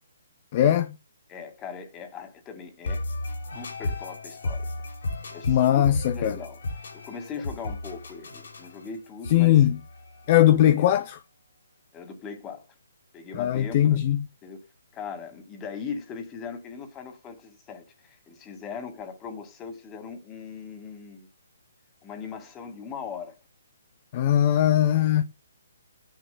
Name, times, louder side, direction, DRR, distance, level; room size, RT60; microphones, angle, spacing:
voice 1, 0.5-0.9 5.5-6.4 9.3-9.8 10.3-11.2 13.3-14.2 24.1-25.2, left 12 dB, 35° left, 0.5 m, -20 dB
voice 2, 1.3-3.1 3.5-4.7 5.3-5.8 6.1-6.6 6.9-9.6 10.4-10.9 11.9-12.7 13.1-14.0 14.4-14.6 14.9-21.3 22.0-23.3, left 6 dB, 15° left, 2.0 m, -39 dB
sound 1, 2.8-10.7, left 2 dB, 75° left, 4.9 m, -34 dB
16.5 x 10.0 x 2.2 m
hypercardioid pair, 160°, 0 cm